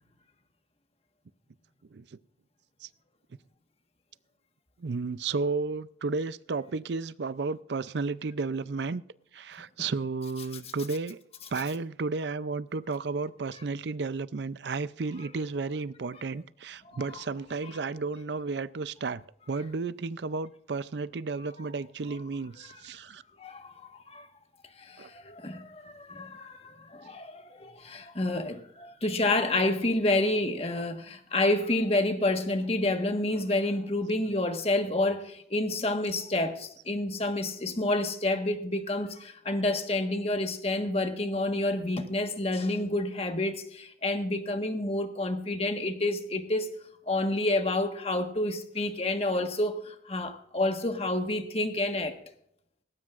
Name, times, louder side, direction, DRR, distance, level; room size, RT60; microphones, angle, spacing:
voice 1, 4.8-9.0 9.3-11.2 11.5-19.2 19.5-23.2 25.0-25.1, right 4 dB, 75° right, 0.5 m, -33 dB
voice 2, 23.4-24.3 24.8-46.7 47.1-52.1, left 2 dB, 35° left, 1.5 m, -29 dB
19.0 x 16.5 x 2.5 m
head